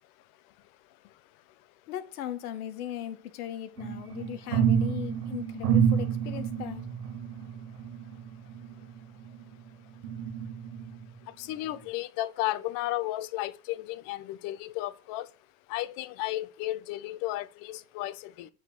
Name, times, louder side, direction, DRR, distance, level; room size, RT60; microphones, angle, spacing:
voice 1, 1.9-6.9, left 11 dB, 85° left, 1.9 m, -38 dB
sound 1, 3.8-9.5 10.0-11.1 11.6-11.8, right 8 dB, 90° right, 2.7 m, -29 dB
voice 2, 11.4-15.3 15.7-18.5, left 16 dB, 45° left, 1.0 m, -33 dB
9.0 x 4.2 x 6.5 m
supercardioid pair, 145°, 44 cm